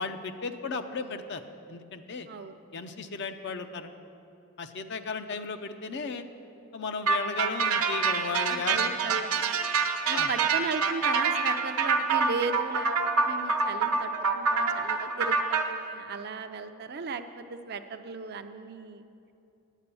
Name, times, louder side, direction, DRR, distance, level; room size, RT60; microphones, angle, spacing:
voice 1, 0.0-1.4 1.7-2.3 2.7-3.9 4.6-6.2 6.7-8.9 10.1-10.3, left 4 dB, 50° left, 8 dB, 0.6 m, -35 dB
voice 2, 2.3-2.6 8.5-9.4 10.1-12.9 13.2-19.0, right 4 dB, 45° right, 8 dB, 0.5 m, -36 dB
sound 1, 7.1-15.6, right 5 dB, 85° right, 0.9 m, -26 dB
10.0 x 8.8 x 6.9 m, 2.7 s
head